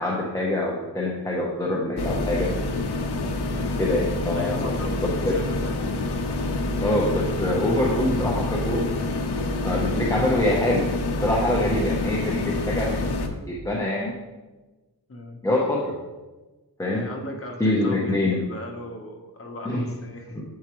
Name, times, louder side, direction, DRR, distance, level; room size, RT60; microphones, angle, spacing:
voice 1, 0.0-2.5 3.8-4.7 4.9-5.4 6.8-8.9 9.6-10.9 11.2-13.1 13.5-14.1 15.4-15.9 16.8-17.0 17.6-18.4 19.6-19.8 20.3-20.4, left 1 dB, 10° left, -3 dB, 0.7 m, -25 dB
sound 1, 2.0-13.3, left 2 dB, 70° left, 0.7 m, -27 dB
voice 2, 4.3-5.8 15.1-15.4 16.9-20.4, left 1 dB, 30° left, 1 dB, 1.0 m, -37 dB
7.9 x 4.7 x 3.0 m, 1.2 s
wide cardioid pair, 135°, 41 cm